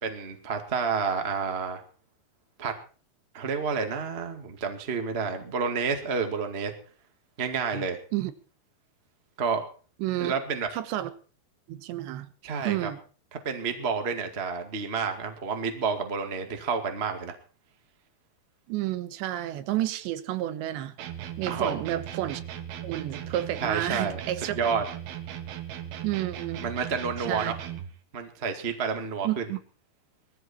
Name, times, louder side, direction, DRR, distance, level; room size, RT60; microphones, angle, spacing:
voice 1, 0.0-1.8 2.6-2.7 3.3-6.7 7.4-8.0 9.4-9.6 10.2-10.7 12.4-12.9 13.3-17.3 21.5-21.8 23.6-24.2 24.5-24.8 26.6-27.6 28.1-29.4, right 5 dB, 40° right, 5 dB, 0.9 m, -29 dB
voice 2, 10.0-10.3 10.7-11.1 11.7-12.3 12.6-13.0 18.7-20.9 21.4-22.4 22.8-24.5 26.0-26.6 27.3-27.5 29.2-29.6, right 14 dB, 85° right, 11 dB, 3.4 m, -30 dB
sound 1, 21.0-28.0, right 10 dB, 70° right, 3.3 m, -38 dB
20.5 x 14.5 x 4.4 m, 0.39 s
omnidirectional pair, 5.0 m